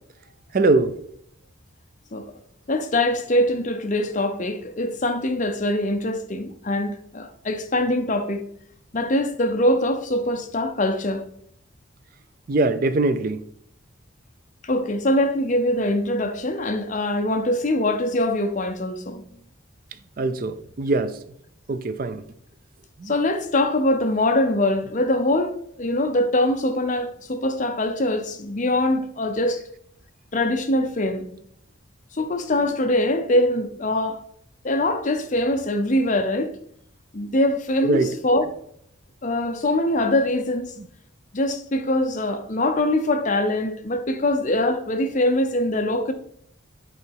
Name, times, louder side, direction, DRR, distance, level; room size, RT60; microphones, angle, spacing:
voice 1, 0.5-0.9 12.5-13.4 20.2-21.2 21.7-22.2 23.0-23.1 37.8-38.1 40.8-40.9, right 2 dB, 45° right, 0.4 m, -22 dB
voice 2, 2.7-8.4 8.9-11.3 14.6-19.2 23.1-29.6 30.3-31.3 32.2-34.2 34.6-36.5 37.1-38.4 39.2-40.7 41.3-46.1, left 1 dB, 40° left, 0.7 m, -23 dB
8.3 x 3.9 x 4.6 m
head